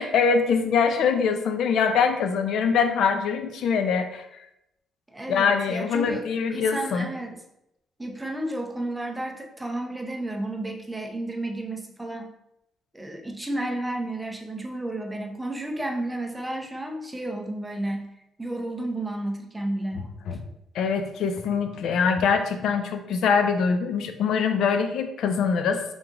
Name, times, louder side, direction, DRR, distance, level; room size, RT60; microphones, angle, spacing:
voice 1, 0.0-4.3 5.3-7.1 20.3-20.4 20.7-25.8, left 6 dB, 70° left, 7 dB, 0.4 m, -23 dB
voice 2, 5.1-7.4 8.0-12.3 12.9-18.1 18.4-20.1, right 1 dB, 10° right, 1 dB, 0.6 m, -32 dB
3.6 x 3.0 x 3.6 m, 0.84 s
cardioid pair, 110°, 0 cm